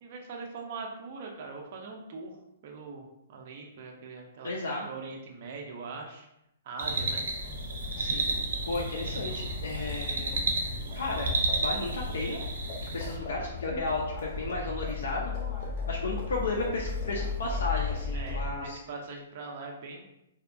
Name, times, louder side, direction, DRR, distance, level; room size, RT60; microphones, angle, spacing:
voice 1, 0.0-6.3 6.6-7.2 8.0-8.3 18.1-20.0, right 4 dB, 35° right, 0 dB, 0.3 m, -42 dB
voice 2, 4.4-4.9 8.0-8.3 8.7-10.4 10.9-11.3 11.6-12.4 12.8-15.3 15.9-18.8, left 2 dB, 85° left, -2 dB, 0.4 m, -33 dB
sound 1, 6.8-13.2, right 2 dB, 90° right, 0.6 m, -32 dB
Livestock farm animals working animals, 7.3-18.8, left 4 dB, 25° left, 0.5 m, -36 dB
2.7 x 2.2 x 2.5 m, 0.84 s
hypercardioid pair, 175°, 0 cm